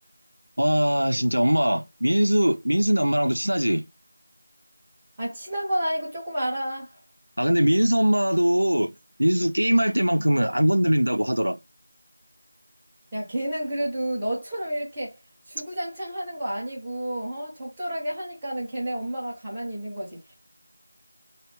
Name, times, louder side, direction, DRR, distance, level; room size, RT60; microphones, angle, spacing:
voice 1, 0.6-3.8 7.4-8.9 9.2-11.6, equal, 85° right, 0.5 m, -21 dB
voice 2, 5.2-7.0 13.1-15.2 15.5-20.2, right 1 dB, 10° right, 0.7 m, -30 dB
3.3 x 2.3 x 3.1 m
figure-of-eight pair, 170°, 0 cm